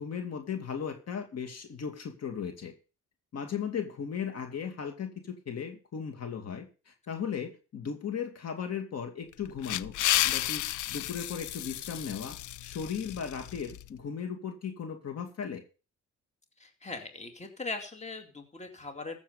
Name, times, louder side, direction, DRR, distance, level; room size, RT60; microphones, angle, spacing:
voice 1, 0.0-2.7 3.3-9.9 10.2-10.6 10.9-12.4 12.6-15.6, left 7 dB, 55° left, 5 dB, 2.5 m, -36 dB
sound 1, 9.3-13.9, left 14 dB, 75° left, 0.6 m, -32 dB
voice 2, 16.6-19.2, left 3 dB, 20° left, 5 dB, 2.5 m, -40 dB
15.0 x 7.1 x 5.5 m, 0.34 s
cardioid pair, 90°, 30 cm